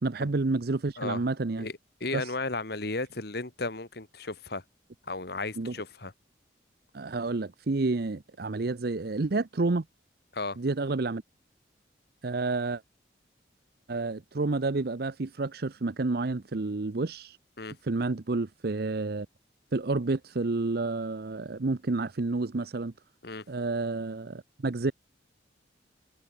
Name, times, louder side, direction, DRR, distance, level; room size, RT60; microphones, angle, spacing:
voice 1, 0.0-1.7 2.1-2.3 5.6-5.7 6.9-9.8 10.6-11.2 12.2-12.8 13.9-17.4 17.8-19.3 19.7-22.9 23.5-24.9, right 3 dB, 55° right, 0.7 m, -29 dB
voice 2, 1.6-4.6 5.1-6.1 10.3-10.6 17.6-17.8 23.2-23.5, left 3 dB, 60° left, 2.1 m, -34 dB
head